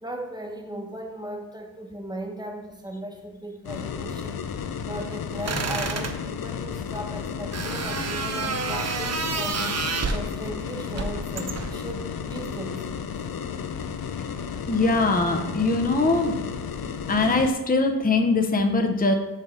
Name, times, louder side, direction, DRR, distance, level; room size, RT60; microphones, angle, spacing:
voice 1, 0.0-4.4 4.8-9.6 10.1-12.8, right 1 dB, 10° right, 2 dB, 1.0 m, -37 dB
sound 1, 3.6-17.5, left 7 dB, 75° left, 0.5 m, -33 dB
sound 2, 5.4-6.2 7.5-10.3 10.9-11.8, right 5 dB, 45° right, 0.6 m, -29 dB
voice 2, 14.7-16.3 17.1-19.1, left 3 dB, 25° left, 4 dB, 0.7 m, -22 dB
6.6 x 3.7 x 4.9 m, 1.1 s
wide cardioid pair, 85°, 36 cm